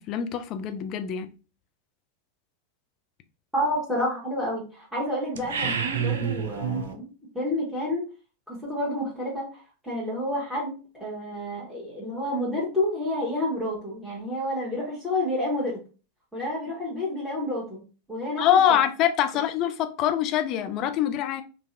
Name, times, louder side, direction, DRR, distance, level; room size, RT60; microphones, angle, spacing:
voice 1, 0.1-1.3 18.4-21.4, left 10 dB, 35° left, 0.5 m, -24 dB
voice 2, 3.5-7.1 7.3-8.0 8.5-15.8 16.3-17.8 18.1-18.4, left 1 dB, ahead, 1.3 m, -29 dB
sound 1, 5.3-6.9, right 7 dB, 60° right, 0.5 m, -28 dB
3.9 x 2.3 x 2.6 m
figure-of-eight pair, 90°, 0 cm